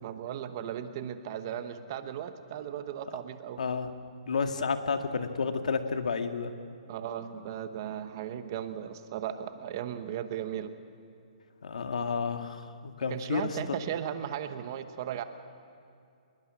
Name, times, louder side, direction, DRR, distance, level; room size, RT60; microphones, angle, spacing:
voice 1, 0.0-3.6 6.9-10.7 13.1-15.2, right 10 dB, 30° right, 10 dB, 1.0 m, -36 dB
voice 2, 3.6-3.9 4.3-6.5 11.6-13.6, left 5 dB, 80° left, 7 dB, 1.7 m, -31 dB
26.5 x 21.0 x 6.1 m, 2.4 s
hypercardioid pair, 170°, 4 cm